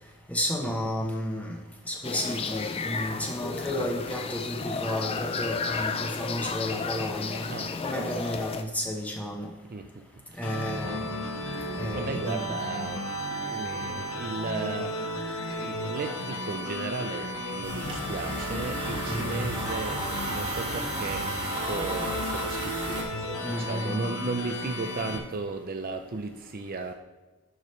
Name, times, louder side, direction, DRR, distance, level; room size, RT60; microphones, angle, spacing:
voice 1, 0.3-1.6 1.8-7.5 7.8-9.5 10.4-11.1 11.7-12.5 19.1-19.5 23.4-24.1, left 1 dB, 5° left, 0 dB, 0.9 m, -32 dB
sound 1, 2.0-8.6, left 4 dB, 25° left, 0.3 m, -33 dB
voice 2, 7.5-8.1 9.7-9.9 10.4-11.0 11.9-13.0 13.3-15.0 15.5-26.9, right 3 dB, 40° right, 6 dB, 0.4 m, -36 dB
sound 2, 10.4-25.2, left 1 dB, 75° left, 1.0 m, -34 dB
sound 3, 17.6-23.0, right 1 dB, 25° right, 1.5 m, -34 dB
11.0 x 4.9 x 3.2 m, 1.2 s
head